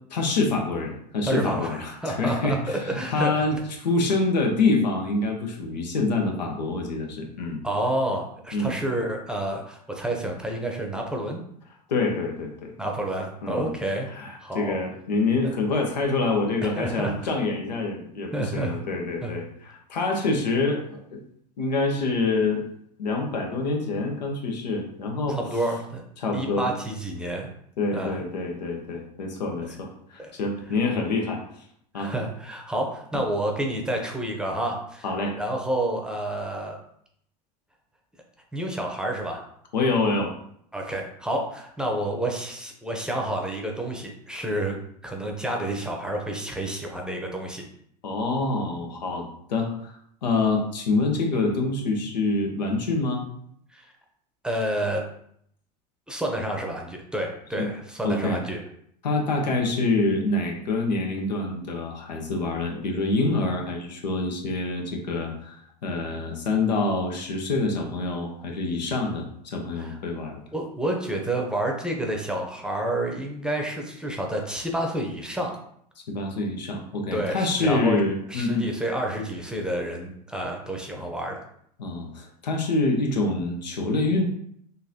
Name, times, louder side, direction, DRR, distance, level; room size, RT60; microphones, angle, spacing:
voice 1, 0.1-7.6 8.5-8.7 11.9-12.7 13.4-13.7 14.1-21.2 21.6-22.6 23.0-25.4 26.2-26.7 27.8-31.4 31.9-32.1 35.0-35.4 39.7-40.3 48.0-53.2 57.6-57.7 58.0-58.4 59.0-70.4 76.1-78.7 81.8-84.2, left 3 dB, 85° left, 2 dB, 0.7 m, -26 dB
voice 2, 1.3-3.6 7.6-11.4 12.8-14.1 14.4-14.8 15.4-15.5 16.7-17.1 18.3-18.8 19.2-19.3 25.3-26.0 26.3-27.5 27.9-28.2 30.2-30.3 31.9-36.8 38.5-39.4 40.7-44.8 45.0-47.6 53.7-53.9 54.4-55.0 56.1-58.6 69.8-70.0 70.5-75.5 77.1-78.0 78.3-81.4, right 1 dB, 5° right, 1 dB, 0.7 m, -29 dB
3.8 x 2.6 x 2.8 m, 0.70 s
hypercardioid pair, 85°, 21 cm